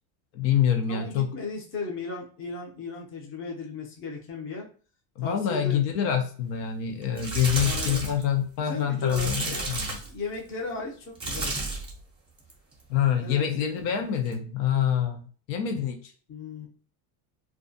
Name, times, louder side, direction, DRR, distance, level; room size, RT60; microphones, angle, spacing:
voice 1, 0.3-1.3 5.2-10.0 12.9-16.1, left 9 dB, 70° left, 4 dB, 0.7 m, -26 dB
voice 2, 0.9-4.7 5.2-5.8 7.6-8.0 8.6-9.7 10.1-11.6 13.2-13.4 16.3-16.7, left 3 dB, 25° left, 0 dB, 0.6 m, -36 dB
sound 1, 7.0-8.2 9.1-10.2 11.1-12.0 12.4-12.7 14.3-14.4, right 3 dB, 10° right, 0.6 m, -31 dB
2.4 x 2.3 x 2.6 m, 0.40 s
supercardioid pair, 130°, 48 cm